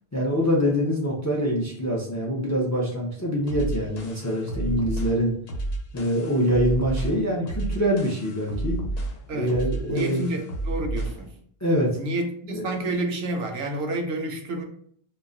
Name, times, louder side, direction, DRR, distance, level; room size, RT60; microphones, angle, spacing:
voice 1, 0.1-5.3 5.9-8.8 9.3-10.2 11.6-11.9 12.5-12.7, equal, 25° left, 0.3 m, -24 dB
sound 1, 3.5-11.3, right 2 dB, 85° left, 0.9 m, -31 dB
voice 2, 9.9-11.4 11.9-14.6, right 1 dB, 80° right, 0.8 m, -29 dB
2.3 x 2.1 x 3.7 m
omnidirectional pair, 1.0 m